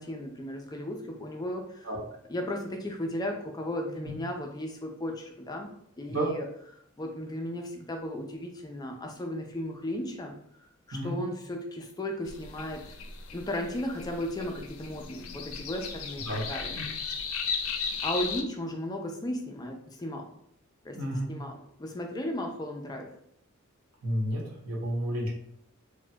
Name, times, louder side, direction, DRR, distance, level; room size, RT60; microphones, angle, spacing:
voice 1, 0.0-1.9 2.3-6.5 7.0-12.9 13.3-16.8 18.0-20.3 20.8-21.0 21.3-23.1, left 1 dB, 20° left, 3 dB, 0.3 m, -35 dB
sound 1, 12.3-18.4, left 5 dB, 85° left, 0.4 m, -36 dB
voice 2, 20.9-21.3 24.0-25.3, right 1 dB, 85° right, -3 dB, 1.0 m, -31 dB
4.2 x 2.1 x 2.2 m, 0.73 s
head